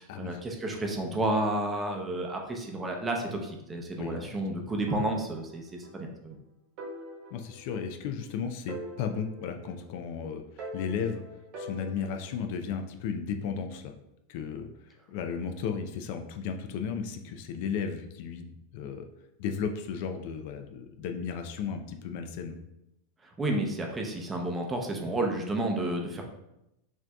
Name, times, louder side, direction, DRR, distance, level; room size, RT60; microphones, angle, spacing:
voice 1, 0.0-6.4 23.2-26.2, right 1 dB, 15° right, 2 dB, 0.6 m, -31 dB
voice 2, 4.0-4.3 7.3-11.2 11.6-13.9 14.3-14.7 15.1-19.1 19.4-22.6, left 6 dB, 55° left, 6 dB, 0.4 m, -34 dB
sound 1, 4.9-6.0 6.3-6.4 6.8-8.3 8.7-10.1 10.6-12.4, right 1 dB, 45° right, 1.1 m, -44 dB
6.0 x 2.6 x 2.3 m, 0.86 s
supercardioid pair, 140°, 0 cm